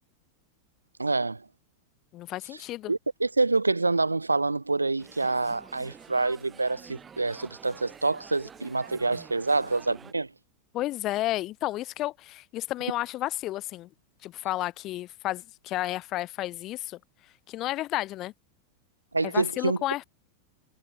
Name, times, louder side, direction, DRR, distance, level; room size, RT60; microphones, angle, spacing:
voice 1, 1.0-1.4 2.9-10.3 19.1-19.8, right 3 dB, 80° right, 0.6 m, -27 dB
voice 2, 2.1-2.9 10.7-13.9 14.2-17.0 17.5-18.3 19.3-20.0, left 16 dB, 35° left, 0.6 m, -32 dB
sound 1, 5.0-10.1, right 7 dB, 20° right, 4.3 m, -49 dB
figure-of-eight pair, 90°, 0 cm